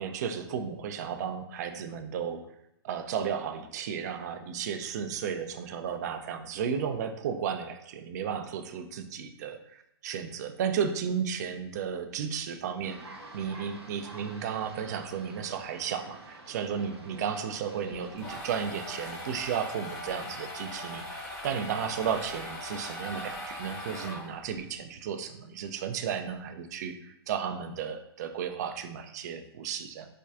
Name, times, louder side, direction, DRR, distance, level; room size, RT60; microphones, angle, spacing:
voice 1, 0.0-2.5 2.8-30.1, right 7 dB, 40° right, 8 dB, 0.3 m, -34 dB
sound 1, 12.8-18.4, right 2 dB, 75° right, 0.7 m, -48 dB
sound 2, 17.9-24.6, left 1 dB, 20° left, 0.8 m, -40 dB
4.3 x 2.3 x 2.4 m, 0.81 s
figure-of-eight pair, 115°, 13 cm